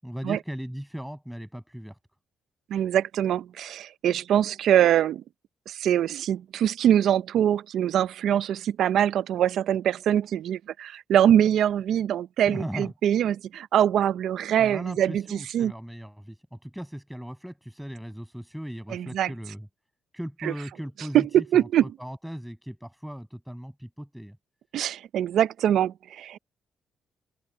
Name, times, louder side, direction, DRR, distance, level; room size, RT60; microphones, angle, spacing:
voice 1, 0.0-2.0 12.5-12.9 14.6-19.7 20.1-24.4, equal, ahead, 7.5 m, -38 dB
voice 2, 2.7-5.2 5.7-15.7 18.9-19.3 20.4-20.5 21.1-21.9 24.7-26.4, right 10 dB, 75° right, 0.6 m, -23 dB
open air
cardioid pair, 90°, 0 cm